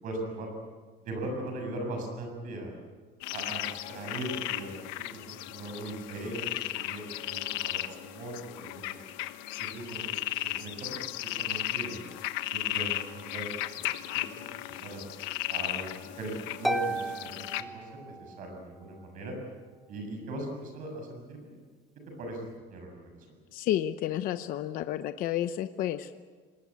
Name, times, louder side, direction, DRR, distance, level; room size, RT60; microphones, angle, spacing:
voice 1, 0.0-0.5 1.0-2.7 3.3-9.0 9.6-10.9 11.2-12.0 12.5-14.2 14.7-15.0 15.5-15.9 16.2-19.4 19.9-21.6 22.2-23.1, right 1 dB, 45° right, 3 dB, 7.1 m, -39 dB
sound 1, 3.2-17.6, left 15 dB, 75° left, 1.2 m, -36 dB
Harp, 16.6-18.5, right 2 dB, ahead, 0.6 m, -33 dB
voice 2, 23.5-26.2, left 12 dB, 45° left, 10 dB, 0.8 m, -31 dB
25.0 x 20.5 x 8.6 m, 1.5 s
cardioid pair, 175°, 19 cm